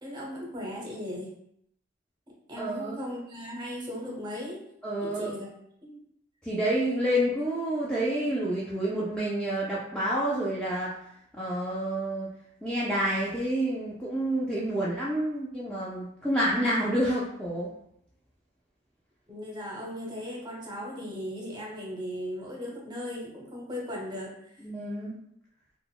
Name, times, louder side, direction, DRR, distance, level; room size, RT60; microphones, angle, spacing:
voice 1, 0.0-1.3 2.5-4.6 5.0-5.5 5.8-6.0 19.3-24.5, equal, 20° right, -3 dB, 0.7 m, -37 dB
voice 2, 2.6-2.9 4.8-5.3 6.4-11.0 11.3-12.3 12.6-17.7 24.6-25.2, right 1 dB, 5° left, -7 dB, 0.3 m, -28 dB
3.8 x 2.1 x 2.3 m, 0.74 s
head